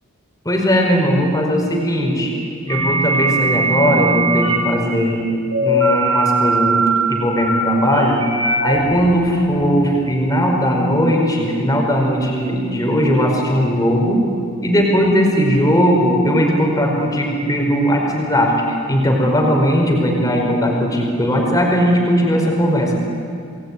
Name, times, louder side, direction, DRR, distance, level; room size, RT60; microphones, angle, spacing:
voice 1, 0.4-2.3 2.7-5.2 5.6-8.2 8.6-14.2 14.6-23.0, equal, 15° left, 0 dB, 4.9 m, -18 dB
sound 1, 2.7-4.6 5.5-9.5, right 2 dB, 80° right, 6.7 m, -19 dB
29.0 x 20.5 x 9.9 m, 2.4 s
head